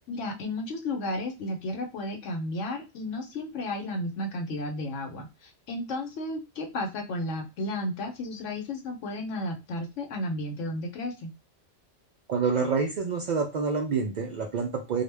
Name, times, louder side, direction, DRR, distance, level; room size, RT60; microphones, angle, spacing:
voice 1, 0.1-11.3, left 1 dB, 75° left, 3 dB, 1.0 m, -33 dB
voice 2, 12.3-15.0, right 5 dB, 80° right, 2 dB, 0.4 m, -27 dB
2.4 x 2.1 x 3.2 m, 0.26 s
omnidirectional pair, 1.3 m